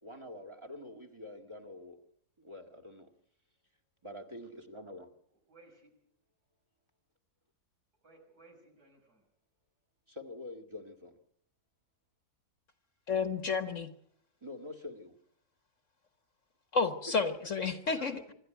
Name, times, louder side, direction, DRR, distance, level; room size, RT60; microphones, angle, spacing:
voice 1, 0.0-2.0 2.4-3.1 4.0-5.1 10.1-11.2 14.4-15.2, left 2 dB, 20° right, 6 dB, 1.9 m, -46 dB
voice 2, 5.5-5.9 8.0-9.2 17.9-18.3, right 2 dB, 80° right, 2 dB, 6.5 m, -58 dB
voice 3, 13.1-13.9 16.7-18.2, left 4 dB, 50° left, 9 dB, 1.5 m, -31 dB
26.0 x 13.0 x 9.2 m, 0.70 s
omnidirectional pair, 1.7 m